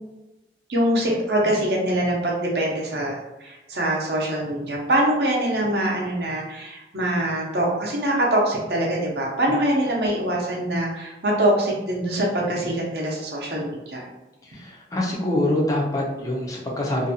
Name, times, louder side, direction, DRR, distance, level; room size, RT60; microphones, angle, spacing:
voice 1, 0.7-14.0, right 1 dB, 60° right, -2 dB, 0.6 m, -24 dB
voice 2, 14.4-17.1, left 1 dB, 20° left, -2 dB, 0.4 m, -25 dB
2.5 x 2.2 x 2.7 m, 1.0 s
head